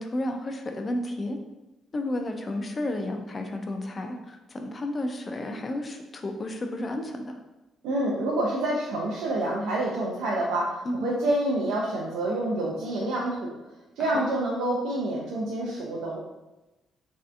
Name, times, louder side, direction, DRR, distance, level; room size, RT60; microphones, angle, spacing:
voice 1, 0.0-1.4 1.9-7.4 10.8-11.0 14.0-14.3, left 1 dB, 25° left, 4 dB, 0.3 m, -32 dB
voice 2, 7.8-13.5 14.0-16.2, right 1 dB, 85° right, -3 dB, 0.4 m, -27 dB
3.2 x 2.6 x 2.4 m, 1.0 s
cardioid pair, 155°, 0 cm